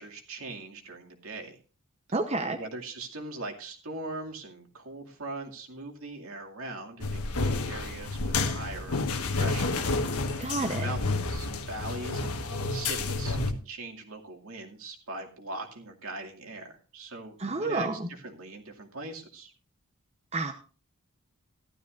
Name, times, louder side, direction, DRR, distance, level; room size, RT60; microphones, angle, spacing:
voice 1, 0.0-1.6 2.4-9.7 10.2-10.5 10.8-19.5, right 2 dB, 70° right, 2 dB, 2.3 m, -41 dB
voice 2, 2.1-2.6 10.4-10.9 17.4-18.1 20.3-20.5, right 3 dB, 30° right, 6 dB, 0.8 m, -29 dB
sound 1, 7.0-13.5, left 3 dB, 90° left, 1.4 m, -30 dB
15.0 x 12.5 x 2.5 m, 0.36 s
head